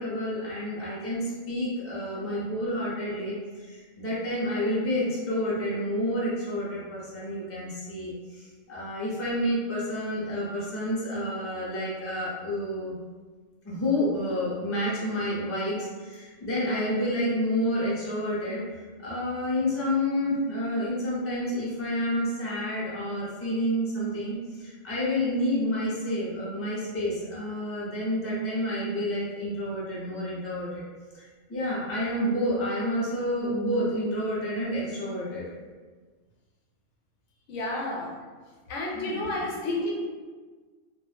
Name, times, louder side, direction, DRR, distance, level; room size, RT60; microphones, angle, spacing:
voice 1, 0.0-12.9 13.6-18.6 19.0-30.8 31.1-35.4 38.9-39.4, equal, 20° left, -7 dB, 0.4 m, -29 dB
voice 2, 37.5-38.1 38.7-39.9, left 2 dB, 90° left, -2 dB, 1.0 m, -30 dB
2.3 x 2.0 x 3.2 m, 1.4 s
omnidirectional pair, 1.2 m